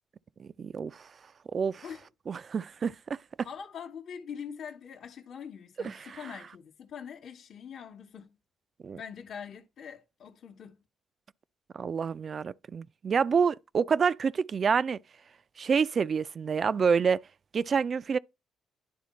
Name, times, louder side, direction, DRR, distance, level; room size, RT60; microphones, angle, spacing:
voice 1, 0.4-1.1 1.5-1.8 2.3-3.2 5.8-6.2 8.8-9.0 11.7-15.0 15.6-17.2 17.5-18.2, right 6 dB, 45° right, 0.3 m, -28 dB
voice 2, 3.4-8.4 8.9-10.8, left 7 dB, 60° left, 0.9 m, -43 dB
10.5 x 3.6 x 4.2 m
cardioid pair, 90°, 0 cm